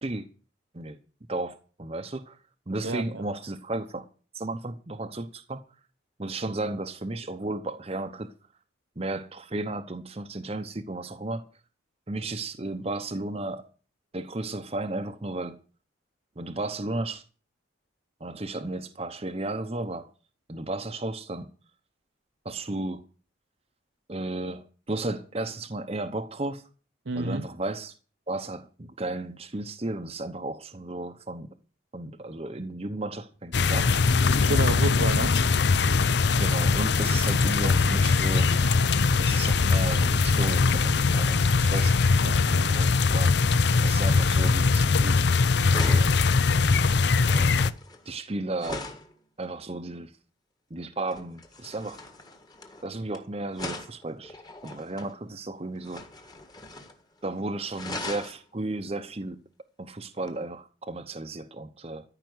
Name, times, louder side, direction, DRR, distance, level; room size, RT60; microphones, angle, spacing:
voice 1, 1.3-2.4 2.7-4.1 4.3-5.6 6.2-8.3 9.0-11.4 12.1-13.7 14.1-15.6 16.4-17.2 18.2-20.1 20.5-21.5 22.4-23.0 24.1-26.6 27.2-27.9 28.3-31.5 31.9-33.9 36.4-38.5 39.2-42.0 42.7-43.4 43.8-45.2 45.7-46.1 47.3-47.6 48.1-48.9 49.4-50.1 50.7-52.0 52.8-54.4 54.6-56.0 57.2-59.4 59.8-62.0, right 2 dB, 30° right, 0.8 m, -34 dB
voice 2, 2.8-3.2 27.1-27.5 34.4-35.3 42.2-42.7, right 3 dB, 70° right, 0.8 m, -30 dB
sound 1, 33.5-47.7, left 4 dB, 55° left, 0.6 m, -22 dB
sound 2, 45.7-49.1 51.1-53.2 53.5-55.1 55.8-57.0 57.3-57.4 57.7-58.4 60.2-60.4, left 2 dB, 20° left, 1.6 m, -40 dB
14.0 x 5.9 x 9.5 m
head